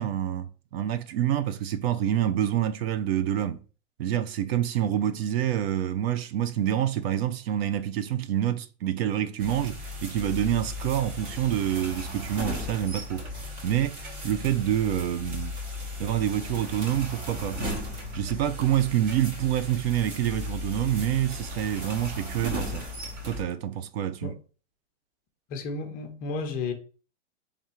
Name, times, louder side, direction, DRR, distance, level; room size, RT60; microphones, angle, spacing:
voice 1, 0.0-3.6 4.0-13.3 13.6-15.6 16.0-17.7 18.1-22.9 23.2-24.4, right 11 dB, 55° right, 0.5 m, -27 dB
sound 1, 9.4-23.4, left 1 dB, 35° right, 1.3 m, -36 dB
voice 2, 25.5-26.7, left 4 dB, 25° left, 0.7 m, -32 dB
3.6 x 3.4 x 4.3 m
supercardioid pair, 155°, 36 cm